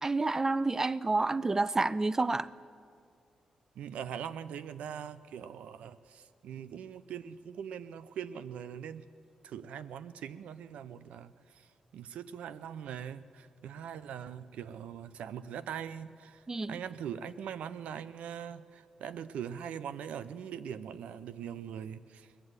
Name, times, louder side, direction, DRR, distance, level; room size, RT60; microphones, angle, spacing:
voice 1, 0.0-2.5 16.5-16.7, right 3 dB, 25° right, 18 dB, 0.4 m, -29 dB
voice 2, 3.8-9.1 9.4-16.4 16.7-22.3, right 8 dB, 85° right, 14 dB, 0.5 m, -42 dB
19.5 x 7.7 x 9.5 m, 2.3 s
cardioid pair, 65°, 2 cm